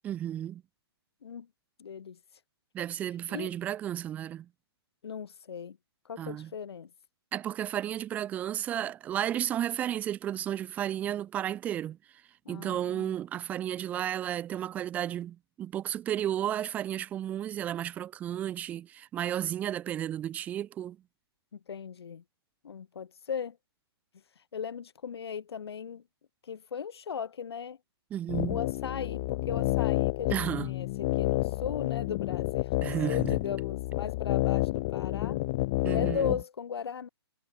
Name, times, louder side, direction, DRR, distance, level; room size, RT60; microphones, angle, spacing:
voice 1, 0.0-0.6 2.7-4.5 6.2-6.5 7.3-12.0 12.5-21.0 28.1-28.6 30.3-30.7 32.8-33.4 35.8-36.4, right 11 dB, 10° right, 7.6 m, -33 dB
voice 2, 1.8-2.4 3.3-3.5 5.0-5.8 6.0-6.9 12.4-13.1 21.5-22.2 22.6-23.6 24.4-26.0 26.4-27.8 28.5-35.4 35.9-37.1, left 7 dB, 70° left, 5.1 m, -38 dB
sound 1, 28.3-36.4, left 20 dB, 15° left, 0.4 m, -29 dB
hypercardioid pair, 180°, 14 cm